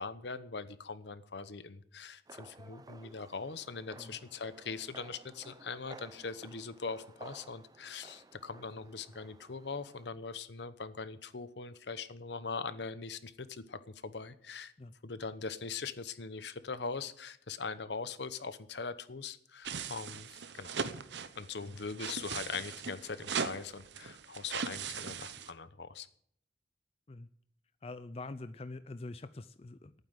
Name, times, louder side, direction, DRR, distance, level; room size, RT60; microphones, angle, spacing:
voice 1, 0.0-14.7 15.0-20.8 21.4-26.1, left 4 dB, 70° left, 13 dB, 0.9 m, -41 dB
sound 1, 2.3-10.1, right 2 dB, 20° right, 0.5 m, -55 dB
sound 2, 19.6-25.5, right 6 dB, 75° right, 0.9 m, -39 dB
voice 2, 27.8-29.9, left 2 dB, 35° left, 12 dB, 0.5 m, -45 dB
11.5 x 9.3 x 8.1 m, 0.65 s
head